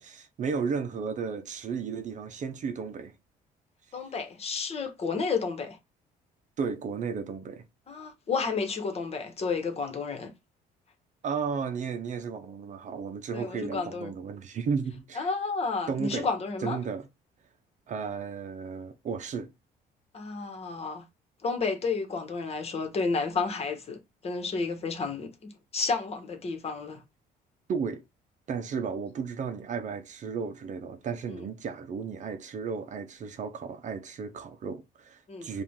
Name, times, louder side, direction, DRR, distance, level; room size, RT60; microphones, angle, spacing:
voice 1, 0.0-3.1 6.6-7.6 11.2-15.3 15.9-16.3 16.6-17.1 17.9-19.5 27.7-28.0 28.5-35.6, right 5 dB, 45° right, 0.7 m, -34 dB
voice 2, 3.9-5.8 7.9-10.3 13.3-14.1 15.1-16.8 20.1-21.0 21.4-27.0 31.3-31.4 35.3-35.5, left 4 dB, 40° left, 1.3 m, -31 dB
5.0 x 2.5 x 3.7 m
cardioid pair, 110°, 17 cm